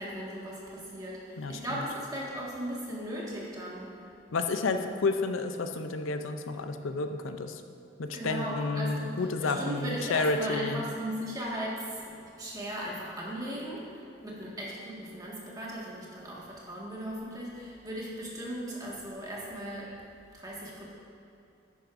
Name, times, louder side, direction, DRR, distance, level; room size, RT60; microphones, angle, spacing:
voice 1, 0.0-3.9 8.1-12.0 12.4-19.9 20.3-20.9, equal, 20° right, -5 dB, 1.7 m, -37 dB
voice 2, 1.4-1.9 4.3-7.6 8.0-10.9, left 3 dB, 85° left, 7 dB, 0.5 m, -31 dB
11.0 x 9.4 x 2.6 m, 2.7 s
head